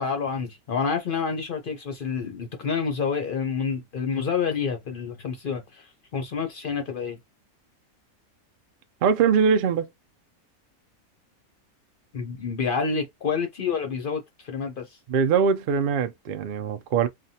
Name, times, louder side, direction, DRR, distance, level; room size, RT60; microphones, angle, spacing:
voice 1, 0.0-7.2 12.1-14.9, left 5 dB, 50° left, 0.7 m, -28 dB
voice 2, 9.0-9.9 15.1-17.1, right 6 dB, 90° right, 0.4 m, -22 dB
3.2 x 2.3 x 2.7 m
omnidirectional pair, 1.5 m